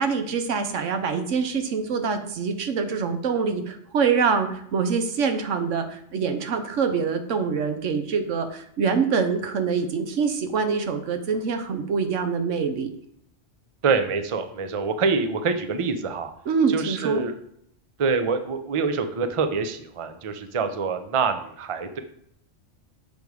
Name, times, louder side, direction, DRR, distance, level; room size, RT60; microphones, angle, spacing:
voice 1, 0.0-12.9 16.5-17.2, right 5 dB, 80° right, 7 dB, 1.2 m, -25 dB
voice 2, 13.8-16.3 16.7-17.3 18.0-22.0, right 5 dB, 35° right, 8 dB, 0.5 m, -25 dB
6.9 x 5.2 x 4.7 m, 0.69 s
omnidirectional pair, 1.3 m